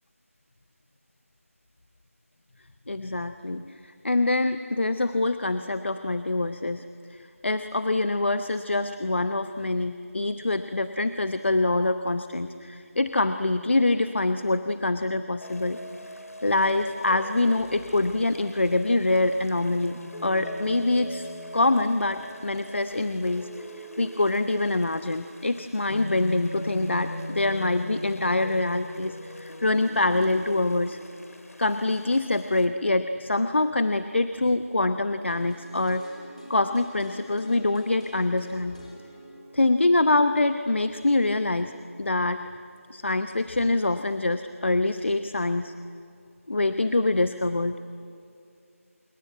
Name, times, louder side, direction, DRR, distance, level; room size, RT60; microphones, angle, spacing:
voice 1, 2.9-6.8 7.1-15.8 16.4-21.3 21.5-31.0 31.6-36.1 36.5-38.8 39.5-41.7 42.0-42.4 42.9-45.7 46.5-47.8, left 2 dB, 50° left, 10 dB, 0.9 m, -25 dB
sound 1, 15.4-32.7, equal, 75° left, 3.3 m, -40 dB
sound 2, 35.2-41.2 41.5-41.6, equal, 25° left, 3.9 m, -47 dB
26.5 x 22.0 x 9.4 m, 2.4 s
figure-of-eight pair, 170°, 8 cm